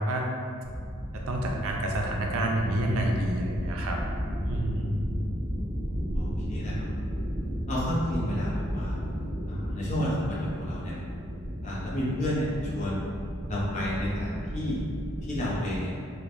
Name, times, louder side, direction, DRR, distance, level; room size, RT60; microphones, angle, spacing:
sound 1, 0.6-15.8, equal, 20° right, 0.7 m, -34 dB
voice 1, 1.1-4.0 4.4-4.9, right 1 dB, 75° right, 0 dB, 0.4 m, -28 dB
voice 2, 6.1-7.1 7.7-9.0 9.5-11.0 11.6-13.0 13.5-14.8 15.2-15.9, left 1 dB, 35° left, -7 dB, 0.5 m, -31 dB
3.1 x 2.1 x 2.4 m, 2.2 s
head